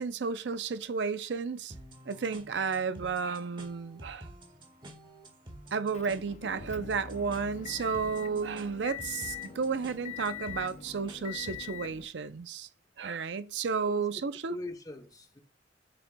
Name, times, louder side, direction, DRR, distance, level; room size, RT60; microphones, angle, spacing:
voice 1, 0.0-1.7 2.1-4.3 5.7-12.7 13.0-14.5, right 5 dB, 70° right, 0.5 m, -32 dB
sound 1, 1.7-11.7, right 1 dB, 30° right, 1.5 m, -50 dB
Motor vehicle (road) / Engine, 5.9-12.1, left 9 dB, 40° left, 0.4 m, -43 dB
voice 2, 14.5-15.4, left 2 dB, 20° left, 0.8 m, -42 dB
6.9 x 6.9 x 2.2 m
head